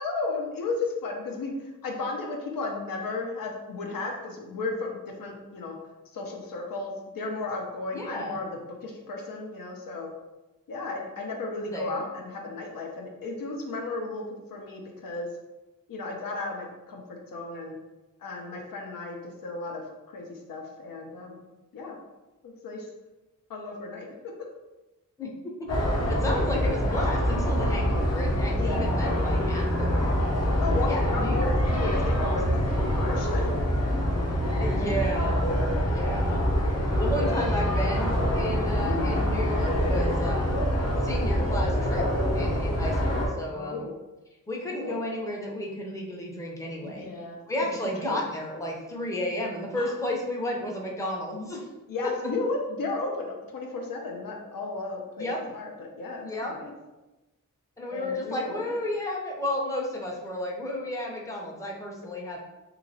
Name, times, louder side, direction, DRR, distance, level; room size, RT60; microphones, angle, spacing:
voice 1, 0.0-1.5 1.8-5.8 6.1-10.1 10.7-15.3 15.9-17.8 18.2-19.8 20.1-21.4 21.7-22.0 22.4-22.9 23.5-24.1 28.6-28.9 30.6-33.5 38.8-39.2 43.5-43.9 44.7-45.0 46.8-47.4 48.1-48.2 49.8-49.9 51.9-56.7 57.9-58.6, left 3 dB, 85° left, 0 dB, 0.7 m, -34 dB
voice 2, 7.9-8.4 11.7-12.0 25.2-25.3 26.1-30.2 30.9-32.6 34.6-35.4 35.9-36.4 37.0-40.6 41.0-42.1 42.3-43.8 44.5-47.1 47.5-51.7 52.0-52.1 55.2-55.4 56.2-56.6 57.8-62.4, left 1 dB, 10° left, -2 dB, 0.5 m, -32 dB
sound 1, 25.7-43.3, equal, 50° left, 0.7 m, -25 dB
3.0 x 2.8 x 2.7 m, 1.1 s
wide cardioid pair, 110°, 33 cm